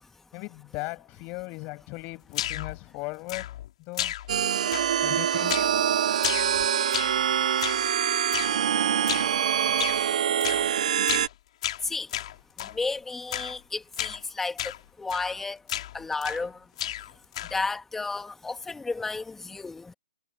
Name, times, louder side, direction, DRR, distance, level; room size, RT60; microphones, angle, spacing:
voice 1, 0.3-4.1 5.0-5.5 9.7-9.8, left 26 dB, 35° left, 6.9 m, -38 dB
sound 1, 2.3-2.8 3.3-3.7 4.0-4.4 4.7-5.1 5.5-5.8 6.2-7.2 7.6-7.9 8.3-8.6 9.1-9.4 9.8-10.0 10.4-10.7 11.1-11.3 11.6-12.8 13.3-13.6 13.9-14.2 14.6-14.8 15.1-15.4 15.7-16.5 16.8-17.7, left 13 dB, 55° left, 5.8 m, -33 dB
sound 2, 4.3-11.3, right 9 dB, 65° right, 0.9 m, -25 dB
voice 2, 11.8-12.1 12.6-16.7 17.5-19.9, left 3 dB, 5° left, 2.1 m, -33 dB
hypercardioid pair, 135°, 4 cm